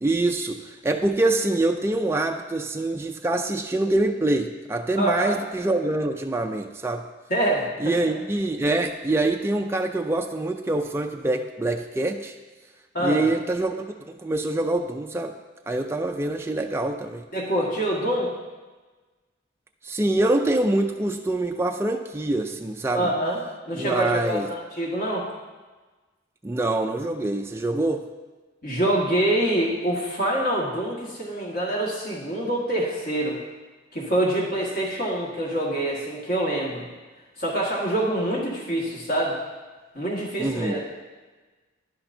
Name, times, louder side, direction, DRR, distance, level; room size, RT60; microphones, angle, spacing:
voice 1, 0.0-7.0 7.8-12.3 13.0-15.3 15.7-17.2 19.8-23.1 23.7-24.5 26.4-28.0 40.4-40.8, right 2 dB, 15° right, 3 dB, 0.3 m, -25 dB
voice 2, 5.0-5.3 7.3-8.1 12.9-13.2 17.3-18.3 22.9-23.4 23.7-25.3 28.6-33.4 33.9-36.9 37.4-39.4 39.9-40.8, right 1 dB, 50° left, -4 dB, 1.7 m, -25 dB
10.5 x 10.0 x 2.7 m, 1.3 s
head